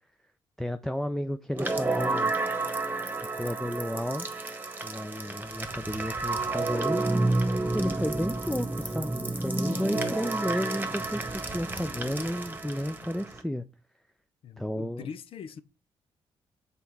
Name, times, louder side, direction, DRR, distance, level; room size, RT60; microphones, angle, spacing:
voice 1, 0.6-2.3 3.4-4.3 4.8-7.0 7.7-13.6 14.6-15.1, equal, 5° left, 0.5 m, -32 dB
sound 1, 1.5-13.4, right 2 dB, 20° right, 1.3 m, -30 dB
voice 2, 9.6-10.2 14.4-15.6, left 7 dB, 70° left, 0.6 m, -41 dB
5.6 x 4.1 x 4.6 m
cardioid pair, 75°, 10 cm